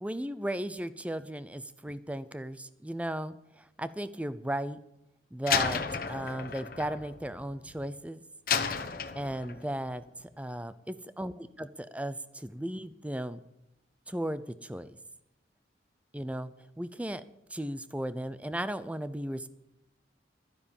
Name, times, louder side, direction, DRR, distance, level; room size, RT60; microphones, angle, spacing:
voice 1, 0.0-4.8 5.3-8.2 9.2-13.4 14.1-14.9 16.1-17.2 17.5-19.5, right 1 dB, 5° right, 14 dB, 0.6 m, -36 dB
Slam, 5.5-7.9 8.5-9.7, left 6 dB, 50° left, 1.1 m, -32 dB
12.5 x 10.0 x 7.2 m, 0.85 s
head